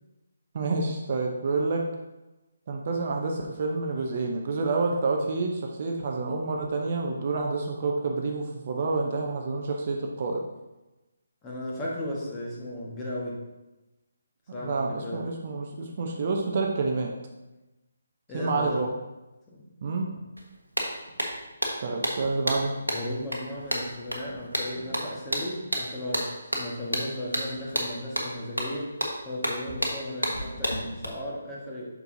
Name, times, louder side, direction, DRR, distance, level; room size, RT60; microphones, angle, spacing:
voice 1, 0.5-1.8 2.7-10.4 14.5-17.1 18.3-18.9 19.8-20.2 21.8-22.7, right 3 dB, 40° right, 1 dB, 0.7 m, -28 dB
voice 2, 11.4-13.4 14.5-14.8 15.0-15.2 18.3-18.8 19.5-19.6 22.9-26.3 26.5-28.9 29.2-31.9, left 1 dB, 15° left, -5 dB, 1.4 m, -35 dB
sound 1, 20.4-20.5 20.8-31.0, equal, 85° right, 1.2 m, -31 dB
7.8 x 6.1 x 2.7 m, 1.0 s
figure-of-eight pair, 145°, 0 cm